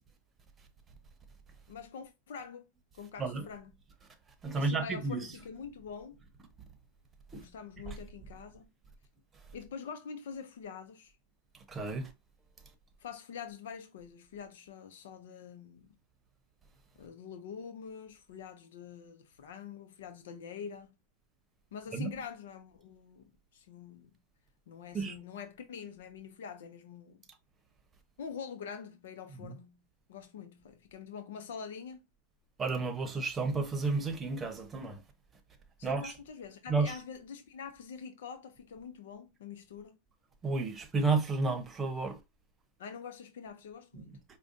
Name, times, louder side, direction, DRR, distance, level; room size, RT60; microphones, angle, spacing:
voice 1, 1.7-2.7 2.9-3.7 4.5-6.2 7.3-8.7 9.5-11.1 13.0-15.9 17.0-20.9 21.7-24.2 24.7-27.2 28.2-29.8 30.1-32.1 35.8-40.0 42.8-44.2, left 6 dB, 85° left, 0.6 m, -45 dB
voice 2, 4.4-5.3 7.3-7.4 7.9-8.0 11.7-12.1 21.9-22.1 24.9-25.1 29.4-29.5 32.6-35.0 35.8-36.1 36.7-36.9 40.4-42.2, right 3 dB, 20° right, 0.8 m, -31 dB
4.9 x 2.2 x 2.6 m
supercardioid pair, 130°, 0 cm